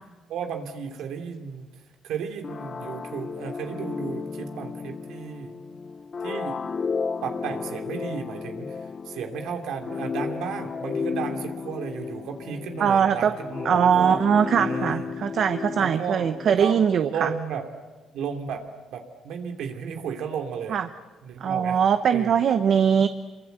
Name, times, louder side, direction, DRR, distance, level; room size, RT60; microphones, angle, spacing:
voice 1, 0.3-5.6 6.2-6.6 7.2-14.3 14.6-15.2 15.7-17.7 18.1-20.8 21.2-21.8 22.1-22.3, right 7 dB, 85° right, 4 dB, 2.9 m, -34 dB
sound 1, 2.4-17.0, left 5 dB, 35° left, 0.8 m, -33 dB
voice 2, 12.8-13.3 13.6-17.3 20.7-20.9 21.4-23.1, right 7 dB, 55° right, 9 dB, 0.9 m, -21 dB
27.5 x 24.0 x 8.2 m, 1.3 s
cardioid pair, 145°, 0 cm